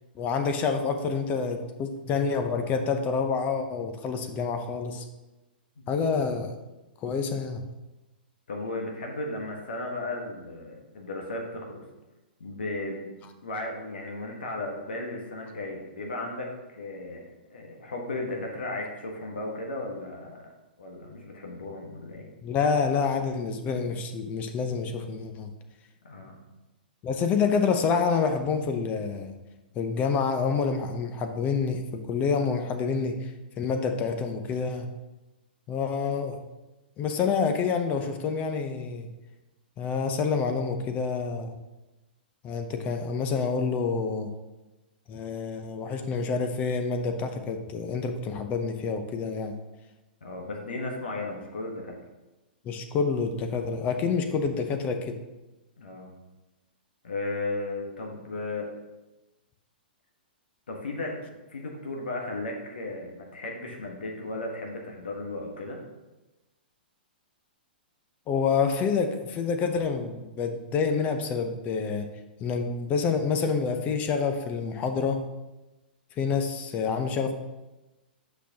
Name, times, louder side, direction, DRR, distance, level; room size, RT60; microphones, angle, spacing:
voice 1, 0.2-5.0 5.9-6.5 7.0-7.6 22.4-25.5 27.0-29.3 29.8-33.3 33.6-34.9 35.7-36.4 37.0-39.1 39.8-41.5 42.4-44.3 45.1-49.6 52.6-55.2 68.3-72.1 72.4-75.2 76.2-77.3, left 5 dB, 30° left, 6 dB, 0.7 m, -27 dB
voice 2, 8.5-11.8 12.4-13.1 13.4-17.2 17.5-20.5 20.8-22.2 26.0-26.4 50.2-52.0 55.8-56.1 57.0-58.7 60.7-61.2 61.5-65.8, left 2 dB, 70° left, 0 dB, 1.3 m, -35 dB
8.1 x 5.8 x 2.9 m, 1.1 s
figure-of-eight pair, 110°, 5 cm